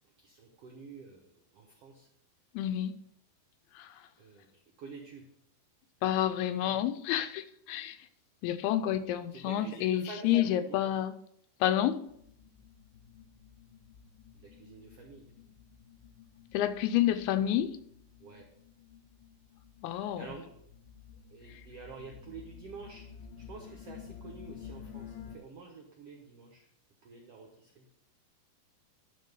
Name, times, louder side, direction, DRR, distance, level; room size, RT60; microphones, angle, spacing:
voice 1, 0.2-2.1 4.2-5.3 9.3-10.9 14.3-15.3 18.2-18.5 20.2-20.5 21.3-23.0 23.4-26.7 27.0-27.8, right 4 dB, 90° right, 1.3 m, -48 dB
voice 2, 2.5-3.0 3.8-4.0 6.0-8.0 8.4-11.1 11.6-12.1 16.5-17.8 19.8-20.3, left 11 dB, 85° left, 2.6 m, -29 dB
sound 1, 12.1-25.4, left 7 dB, 70° left, 2.3 m, -51 dB
11.0 x 3.8 x 6.6 m
omnidirectional pair, 4.4 m